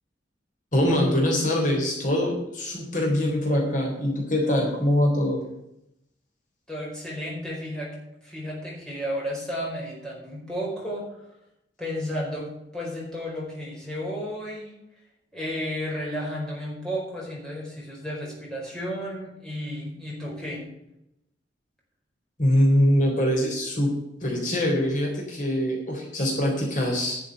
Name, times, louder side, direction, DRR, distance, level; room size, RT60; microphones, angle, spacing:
voice 1, 0.7-5.4 22.4-24.0 24.2-27.2, left 1 dB, 45° left, -1 dB, 3.6 m, -23 dB
voice 2, 6.7-7.9 8.2-11.2 11.8-12.5 12.7-14.7 15.3-20.6, equal, 5° left, -4 dB, 4.8 m, -33 dB
11.5 x 7.1 x 8.0 m, 0.83 s
head